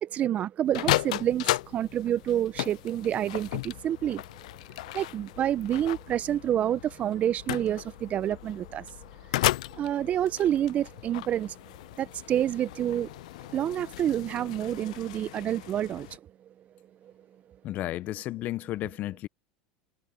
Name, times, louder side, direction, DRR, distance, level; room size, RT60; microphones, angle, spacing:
voice 1, 0.0-4.2 4.9-8.8 9.4-11.5 12.0-13.1 13.5-16.2, right 11 dB, 40° right, 1.0 m, -28 dB
sound 1, 0.7-16.2, left 17 dB, 75° left, 0.4 m, -35 dB
voice 2, 17.6-19.3, left 15 dB, 50° left, 0.8 m, -33 dB
hypercardioid pair, 90°, 4 cm